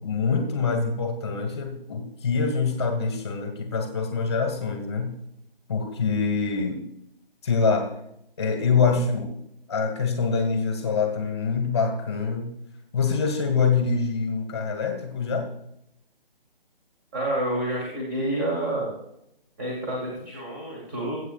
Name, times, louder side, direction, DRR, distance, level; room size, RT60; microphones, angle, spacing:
voice 1, 0.0-5.1 5.7-6.8 7.4-7.9 8.4-9.3 9.7-12.5 12.9-15.4, left 5 dB, 25° left, 4 dB, 1.3 m, -25 dB
voice 2, 17.1-18.9 19.6-21.2, right 1 dB, 20° right, -3 dB, 1.9 m, -28 dB
21.0 x 8.3 x 2.4 m, 0.81 s
figure-of-eight pair, 155°, 30 cm